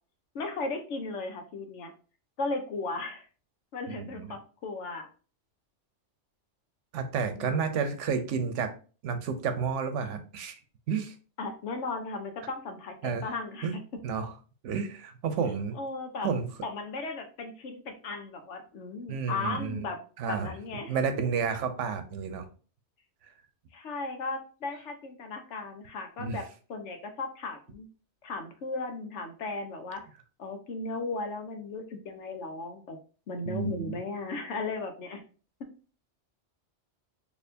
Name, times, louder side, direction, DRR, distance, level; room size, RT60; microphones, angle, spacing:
voice 1, 0.3-1.9 2.4-3.3 3.7-5.1 7.4-7.9 11.4-13.8 15.8-16.3 16.6-20.0 20.3-20.9 23.7-27.9 28.2-30.0 30.4-33.0 33.3-35.2, left 3 dB, 75° left, 6 dB, 1.1 m, -36 dB
voice 2, 3.9-4.4 6.9-8.7 9.0-10.6 10.9-11.1 13.0-13.3 13.6-13.8 14.0-14.3 14.6-15.8 16.2-16.5 19.1-19.9 20.2-20.5 20.9-22.5 26.2-26.4 33.4-34.0, right 6 dB, 85° right, 9 dB, 1.0 m, -31 dB
4.3 x 2.9 x 2.6 m, 0.37 s
omnidirectional pair, 1.2 m